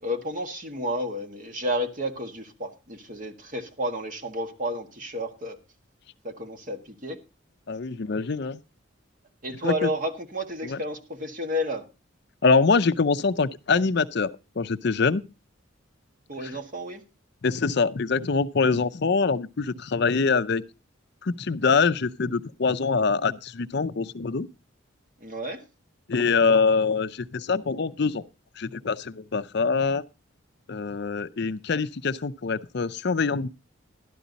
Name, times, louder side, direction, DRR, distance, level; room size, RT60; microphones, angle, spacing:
voice 1, 0.0-5.6 6.2-7.2 9.4-11.8 16.3-17.0 25.2-25.6, equal, 40° right, 1.7 m, -31 dB
voice 2, 7.7-8.6 9.6-9.9 10.6-10.8 12.4-14.3 14.6-15.2 16.4-16.5 17.4-20.6 21.2-24.5 26.1-28.2 28.6-30.0 30.7-33.5, left 4 dB, 55° left, 0.5 m, -24 dB
12.5 x 11.5 x 4.0 m
head